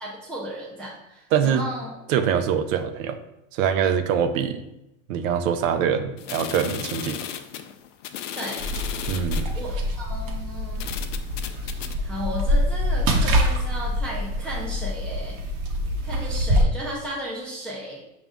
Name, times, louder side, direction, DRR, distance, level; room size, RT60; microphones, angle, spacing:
voice 1, 0.0-1.9 8.4-8.7 9.5-10.8 12.0-15.4 16.0-18.0, equal, 5° left, -5 dB, 0.3 m, -34 dB
voice 2, 1.3-1.7 2.1-3.2 3.5-4.6 5.1-7.2 9.1-9.5, right 8 dB, 70° right, 9 dB, 0.6 m, -24 dB
sound 1, 6.2-9.5 10.2-10.3 10.8-11.9, left 10 dB, 60° left, 0.5 m, -35 dB
sound 2, 8.6-16.6, equal, 45° right, 0.9 m, -25 dB
6.0 x 2.6 x 3.4 m, 0.90 s
supercardioid pair, 135°, 42 cm